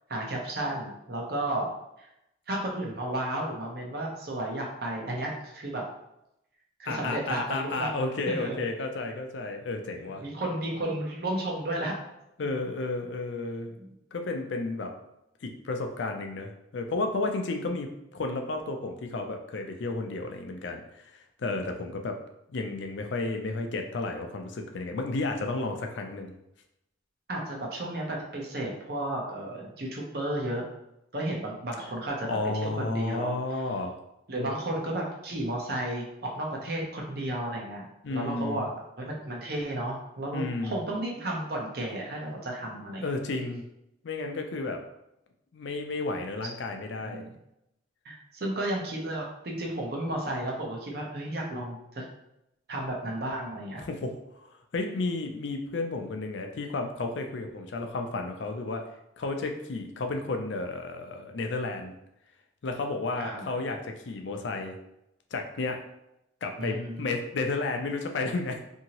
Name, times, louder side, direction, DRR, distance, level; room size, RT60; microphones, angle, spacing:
voice 1, 0.1-1.7 2.0-2.1 2.5-5.8 6.8-7.9 8.3-8.6 10.2-12.0 13.8-13.9 27.3-30.6 31.1-33.4 34.3-37.8 38.1-38.7 39.0-43.0 47.0-47.3 48.0-52.0 52.7-53.8 63.2-63.5 66.6-67.0, right 1 dB, 55° right, -1 dB, 0.7 m, -33 dB
voice 2, 6.9-10.3 12.4-13.7 14.1-14.9 15.4-22.2 22.5-26.3 32.3-33.9 34.4-34.5 38.0-38.7 40.3-40.8 43.0-43.6 44.0-44.8 45.5-47.2 53.9-54.5 54.7-58.8 59.2-61.9 62.6-64.8 65.3-65.8 66.4-68.6, left 3 dB, 70° left, 4 dB, 0.4 m, -32 dB
2.8 x 2.7 x 2.9 m, 0.85 s
head